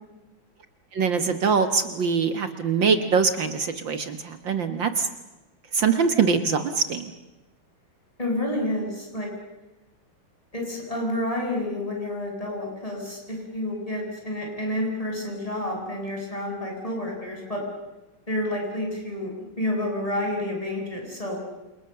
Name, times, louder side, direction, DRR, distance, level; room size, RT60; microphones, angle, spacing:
voice 1, 0.9-5.1 5.7-7.1, right 5 dB, 60° right, 9 dB, 2.1 m, -23 dB
voice 2, 8.2-9.3 10.5-17.6 18.3-19.3 19.6-21.4, left 1 dB, 15° left, 0 dB, 7.4 m, -29 dB
28.5 x 28.5 x 6.9 m, 1.0 s
omnidirectional pair, 2.3 m